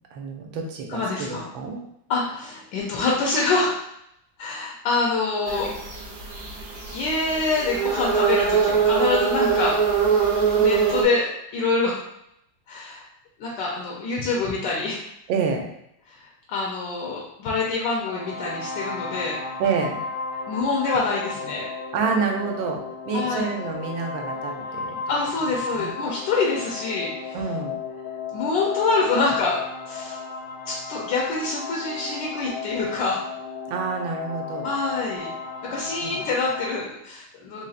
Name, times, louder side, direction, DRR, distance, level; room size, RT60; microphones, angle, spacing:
voice 1, 0.1-1.8 15.3-15.7 19.6-20.0 21.9-22.8 23.1-25.0 25.7-26.0 27.3-27.7 33.7-34.7 36.0-36.2, right 5 dB, 75° right, 2 dB, 1.3 m, -28 dB
voice 2, 0.9-1.5 2.1-3.8 4.4-5.7 6.9-9.8 10.5-12.0 12.7-13.1 13.4-15.0 16.1-19.4 20.5-21.7 23.1-23.5 25.1-27.4 28.3-29.6 29.9-30.2 30.7-33.2 34.6-35.3 35.6-37.7, left 3 dB, 70° left, -3 dB, 1.2 m, -26 dB
sound 1, 5.5-11.0, right 6 dB, 55° right, 1.1 m, -23 dB
sound 2, 18.0-36.8, left 4 dB, 90° left, 1.5 m, -34 dB
4.0 x 3.2 x 2.4 m, 0.77 s
omnidirectional pair, 2.2 m